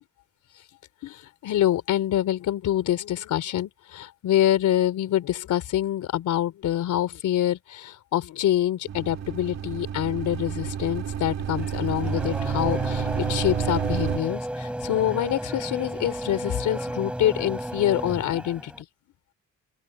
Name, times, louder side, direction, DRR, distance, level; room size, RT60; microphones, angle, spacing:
voice 1, 1.0-18.9, left 12 dB, 75° left, 3.4 m, -26 dB
sound 1, 8.9-14.2, right 8 dB, 60° right, 2.0 m, -30 dB
Race car auto racing / Accelerating revving vroom, 11.5-18.8, right 1 dB, 5° right, 4.5 m, -33 dB
open air
cardioid pair, 90°, 30 cm